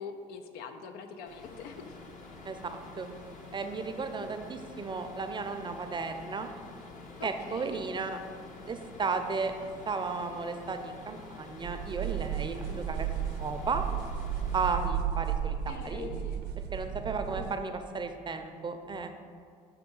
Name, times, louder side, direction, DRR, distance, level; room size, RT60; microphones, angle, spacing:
voice 1, 0.0-2.0 4.2-4.3 7.2-7.8 12.5-12.8 15.3-16.4 17.4-17.6, left 5 dB, 85° left, 7 dB, 0.5 m, -44 dB
sound 1, 1.3-14.8, left 3 dB, 55° left, 0.9 m, -48 dB
voice 2, 2.4-3.1 3.5-6.5 7.2-8.2 8.6-9.5 9.9-13.1 13.4-13.8 14.5-16.1 16.7-19.2, right 4 dB, 30° right, 7 dB, 0.5 m, -34 dB
sound 2, 11.6-17.6, right 9 dB, 80° right, 0.6 m, -34 dB
7.2 x 2.7 x 5.3 m, 2.2 s
supercardioid pair, 85°, 16 cm